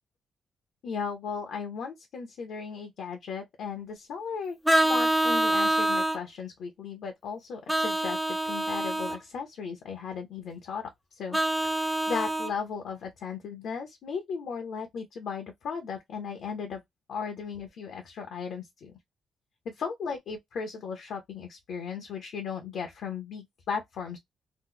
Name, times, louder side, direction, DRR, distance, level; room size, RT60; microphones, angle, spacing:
voice 1, 0.8-4.6 4.8-11.4 11.6-16.8 17.1-18.9 19.7-24.2, left 6 dB, 65° left, 0.6 m, -36 dB
Vehicle horn car horn honking, 4.6-6.2 7.7-9.2 11.3-12.5, right 1 dB, ahead, 0.4 m, -26 dB
2.8 x 2.0 x 3.7 m
cardioid pair, 175°, 0 cm